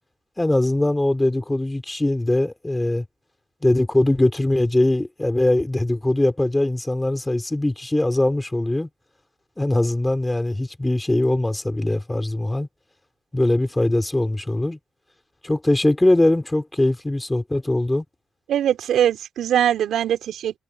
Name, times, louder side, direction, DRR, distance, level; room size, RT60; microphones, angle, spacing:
voice 1, 0.4-3.0 3.6-8.9 9.6-12.7 13.3-14.8 15.4-18.0, left 1 dB, 10° left, 4.8 m, -21 dB
voice 2, 18.5-20.6, right 10 dB, 70° right, 5.0 m, -21 dB
cardioid pair, 90°, 0 cm